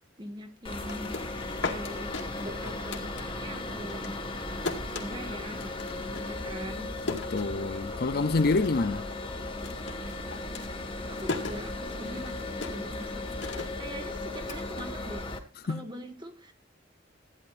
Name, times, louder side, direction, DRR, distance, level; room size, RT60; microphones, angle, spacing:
voice 1, 0.2-1.2 1.6-4.2 5.0-7.0 11.1-13.2 13.5-15.3 15.6-16.5, equal, 25° right, 1.7 m, -42 dB
sound 1, 0.6-15.4, left 2 dB, 30° left, 1.7 m, -36 dB
sound 2, 0.9-3.6 3.9-8.0 8.3-9.0 9.2-15.5, left 3 dB, 75° left, 2.2 m, -39 dB
voice 2, 7.1-9.1 15.7-15.9, left 3 dB, 55° left, 0.6 m, -27 dB
15.5 x 10.5 x 2.6 m
head